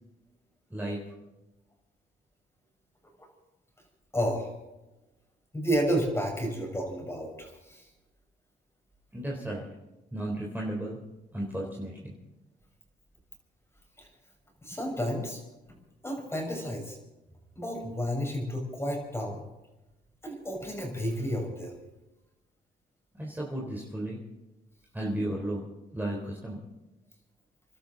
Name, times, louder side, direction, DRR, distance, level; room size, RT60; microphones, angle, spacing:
voice 1, 4.1-4.5 5.5-7.8 14.0-14.1 14.6-15.4 16.0-17.0 17.6-19.4 20.2-21.7, equal, 10° left, 1 dB, 6.1 m, -31 dB
voice 2, 9.1-9.7 10.1-11.0 11.3-12.1 23.1-24.2 24.9-25.6 25.9-26.6, right 1 dB, 10° right, -3 dB, 4.0 m, -34 dB
29.5 x 12.0 x 4.1 m, 0.99 s
cardioid pair, 90°, 20 cm